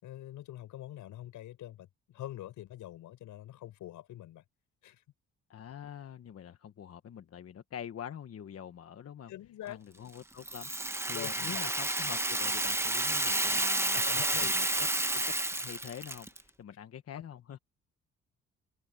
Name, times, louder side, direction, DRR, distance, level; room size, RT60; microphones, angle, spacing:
voice 1, 0.0-4.4 4.8-5.0 9.3-9.8 11.1-11.6 13.9-14.5, left 13 dB, 85° left, 6.7 m, -45 dB
voice 2, 5.5-9.3 9.7-17.6, left 9 dB, 50° left, 1.3 m, -45 dB
Rattle (instrument), 10.4-16.4, right 1 dB, 10° right, 1.2 m, -30 dB
cardioid pair, 90°, 30 cm